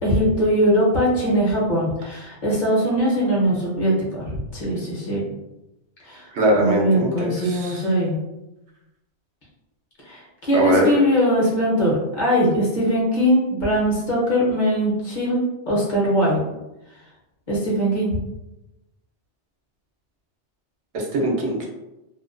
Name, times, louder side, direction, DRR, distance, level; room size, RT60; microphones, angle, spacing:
voice 1, 0.0-4.2 4.5-5.2 6.0-6.3 6.6-8.2 10.0-16.4 17.5-18.2, equal, 50° left, -5 dB, 0.8 m, -21 dB
voice 2, 6.3-7.8 10.5-11.0 20.9-21.7, right 1 dB, 75° right, -1 dB, 0.9 m, -21 dB
2.3 x 2.2 x 2.4 m, 0.95 s
omnidirectional pair, 1.2 m